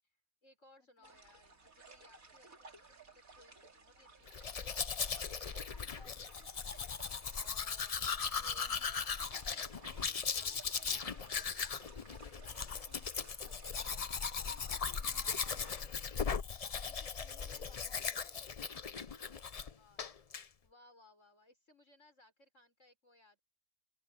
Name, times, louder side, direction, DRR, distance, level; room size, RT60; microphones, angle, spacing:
voice 1, 0.0-4.6 19.1-20.3 20.6-23.4, left 1 dB, 60° left, 6.1 m, -66 dB
brook gurgling, 1.0-15.9, right 3 dB, 75° right, 3.2 m, -58 dB
Domestic sounds home sounds, 4.3-19.7 20.0-20.4, left 6 dB, 40° left, 0.5 m, -38 dB
voice 2, 5.7-6.9 7.3-11.4 12.3-13.8 14.4-16.1 16.8-18.6, left 2 dB, 85° left, 5.4 m, -64 dB
open air
omnidirectional pair, 1.5 m